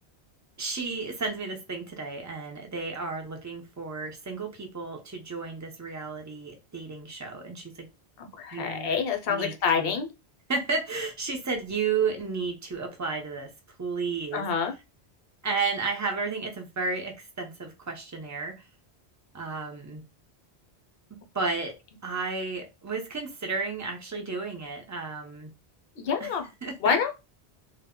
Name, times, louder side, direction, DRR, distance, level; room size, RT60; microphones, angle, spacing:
voice 1, 0.6-7.9 8.5-8.9 9.3-9.9 10.5-13.5 13.8-14.5 15.4-18.7 19.3-20.0 21.3-21.8 22.0-25.5 26.2-26.3 26.6-27.1, right 4 dB, 25° right, 0.4 m, -32 dB
voice 2, 8.2-10.1 14.3-14.7 26.0-26.5 26.8-27.1, left 6 dB, 65° left, 0.8 m, -27 dB
2.1 x 2.0 x 3.5 m
omnidirectional pair, 1.1 m